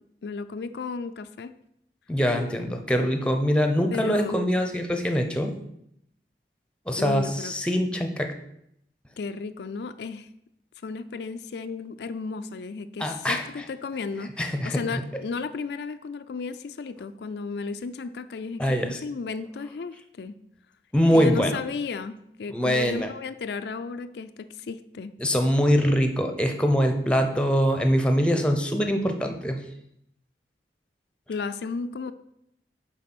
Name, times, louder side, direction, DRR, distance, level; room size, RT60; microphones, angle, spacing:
voice 1, 0.2-1.6 3.9-4.4 7.0-7.5 9.2-10.3 10.8-20.3 21.1-25.1 31.3-32.1, left 4 dB, 70° left, 10 dB, 0.4 m, -34 dB
voice 2, 2.1-5.5 6.9-8.3 13.0-13.6 14.4-15.0 18.6-19.0 20.9-21.6 22.5-23.1 25.2-29.6, equal, 5° left, 5 dB, 0.7 m, -23 dB
7.3 x 4.8 x 6.0 m, 0.77 s
head